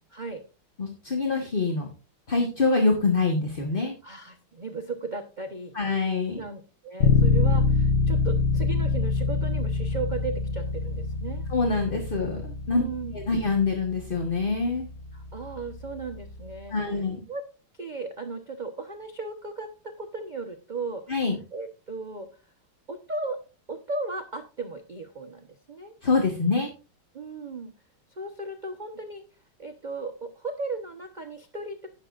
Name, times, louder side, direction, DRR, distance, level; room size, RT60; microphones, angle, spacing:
voice 1, 0.1-0.4 4.0-5.7 6.4-11.5 12.7-13.1 15.1-17.0 17.3-17.4 17.8-21.0 21.5-22.4 22.9-23.4 23.7-25.9 27.1-27.7 28.1-29.2 29.6-31.9, right 3 dB, 55° right, 4 dB, 0.5 m, -36 dB
voice 2, 0.8-1.9 2.3-4.0 5.7-6.4 11.5-12.8 13.1-14.9 16.7-17.2 21.1-21.4 26.0-26.7, left 3 dB, 30° left, 1 dB, 1.2 m, -25 dB
Bass guitar, 7.0-16.7, left 4 dB, 65° left, 0.6 m, -26 dB
18.5 x 6.7 x 2.5 m, 0.31 s
omnidirectional pair, 2.3 m